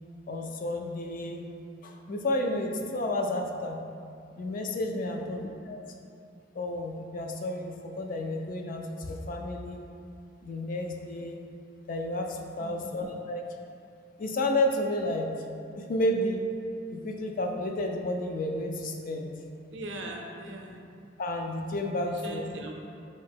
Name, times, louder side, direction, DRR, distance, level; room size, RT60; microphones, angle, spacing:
voice 1, 0.3-1.4 1.8-3.8 4.4-5.8 6.5-9.8 10.4-11.4 11.9-13.4 14.2-15.3 15.8-16.4 16.9-19.3 21.2-22.4, left 1 dB, 50° left, 3 dB, 0.4 m, -31 dB
voice 2, 5.0-5.4 5.9-6.0 12.6-12.9 19.7-20.8 21.9-22.7, right 1 dB, 70° right, 1 dB, 0.5 m, -41 dB
4.2 x 2.8 x 3.5 m, 2.5 s
head